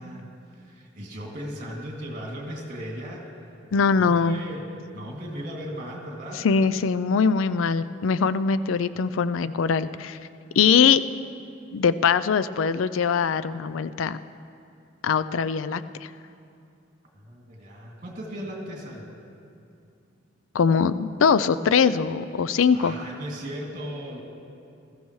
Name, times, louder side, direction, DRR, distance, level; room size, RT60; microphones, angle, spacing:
voice 1, 0.0-3.3 3.7-6.4 17.1-19.1 22.7-24.2, equal, 45° right, -1 dB, 2.5 m, -37 dB
voice 2, 3.7-4.4 6.4-10.2 10.6-11.0 11.7-14.2 15.0-16.1 20.5-22.9, left 6 dB, 90° left, 15 dB, 0.4 m, -22 dB
20.5 x 14.0 x 3.2 m, 2.5 s
head